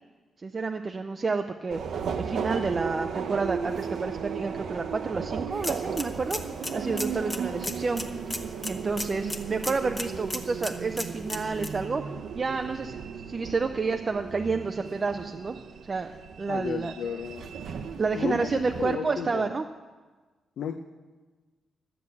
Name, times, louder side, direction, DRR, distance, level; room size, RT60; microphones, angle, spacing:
voice 1, 0.4-1.8 2.1-6.4 6.7-8.0 8.7-12.0 12.4-15.6 15.8-16.1 16.4-16.9 18.0-19.6, right 4 dB, 25° right, 6 dB, 0.4 m, -29 dB
Subway metro underground, 1.7-18.9, right 6 dB, 65° right, 0.7 m, -35 dB
sound 1, 5.5-11.7, left 2 dB, 15° left, 0.8 m, -38 dB
voice 2, 16.5-17.5 18.1-19.5 20.6-20.7, left 7 dB, 75° left, 5 dB, 0.6 m, -33 dB
12.5 x 7.0 x 8.4 m, 1.3 s
wide cardioid pair, 165°, 0 cm